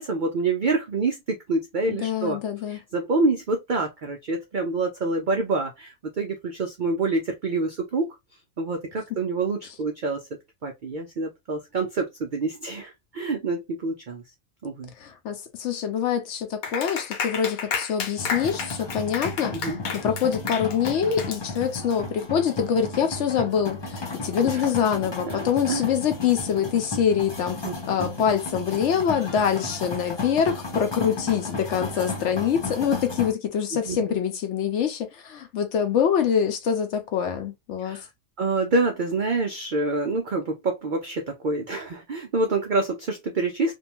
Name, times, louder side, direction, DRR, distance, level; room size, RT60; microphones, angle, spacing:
voice 1, 0.0-2.4 2.7-8.2 8.6-10.2 10.6-14.2 14.6-14.9 19.5-19.8 24.5-24.6 25.3-25.9 27.6-27.7 33.9-34.2 37.8-38.0 38.4-43.7, right 3 dB, 80° right, 0.4 m, -27 dB
voice 2, 1.9-2.8 15.0-19.6 19.9-27.6 27.9-38.1, left 8 dB, 65° left, 0.8 m, -25 dB
Clapping, 16.6-21.9, left 6 dB, 85° left, 1.2 m, -32 dB
sound 1, 18.2-33.3, left 2 dB, 25° left, 0.6 m, -34 dB
2.6 x 2.2 x 2.9 m
omnidirectional pair, 1.5 m